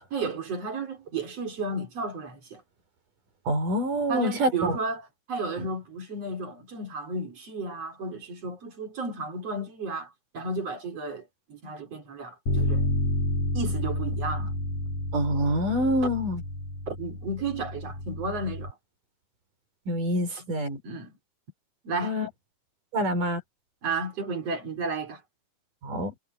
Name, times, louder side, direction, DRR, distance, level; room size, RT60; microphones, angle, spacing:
voice 1, 0.1-2.6 4.1-12.9 13.5-14.5 16.9-18.7 20.3-20.5 20.8-21.1 21.9-22.1 23.8-25.2, right 3 dB, 50° right, 5.1 m, -33 dB
voice 2, 3.5-4.8 5.6-5.7 15.1-16.4 19.9-20.8 22.0-22.3 22.9-23.4 25.8-26.1, equal, 80° right, 6.8 m, -26 dB
Bass guitar, 12.5-18.7, left 1 dB, 50° left, 7.7 m, -30 dB
omnidirectional pair, 3.7 m